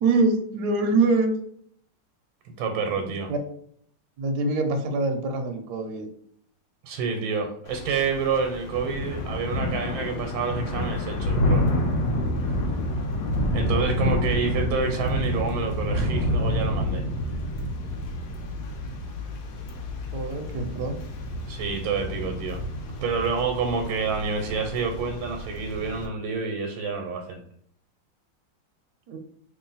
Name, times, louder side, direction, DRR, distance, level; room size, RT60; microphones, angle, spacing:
voice 1, 0.0-1.3 3.0-3.4 4.2-6.1 13.7-13.9 20.1-21.0 29.1-29.2, right 3 dB, 70° right, 4 dB, 1.0 m, -25 dB
voice 2, 2.4-3.3 6.8-11.7 13.5-17.0 21.4-22.6 23.0-27.4, right 5 dB, 85° right, 3 dB, 1.4 m, -28 dB
Thunder / Rain, 7.7-26.1, left 1 dB, 75° left, 1.3 m, -28 dB
3.0 x 2.5 x 3.9 m, 0.63 s
omnidirectional pair, 2.1 m